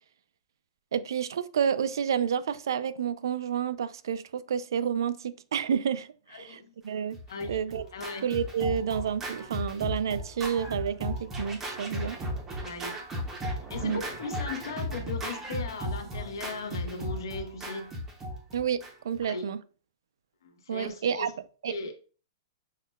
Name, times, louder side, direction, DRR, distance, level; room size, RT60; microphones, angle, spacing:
voice 1, 0.9-7.2 7.5-7.8 8.2-12.2 13.8-14.0 18.5-19.6 20.7-21.3 21.6-21.8, right 7 dB, 80° right, 0.3 m, -30 dB
Scratching (performance technique), 7.1-19.2, equal, 10° right, 0.5 m, -36 dB
voice 2, 7.9-8.3 12.6-13.0 13.7-18.0 19.3-19.5 20.4-21.3 21.7-21.9, left 3 dB, 75° left, 0.7 m, -37 dB
5.5 x 2.2 x 2.2 m
hypercardioid pair, 175°, 2 cm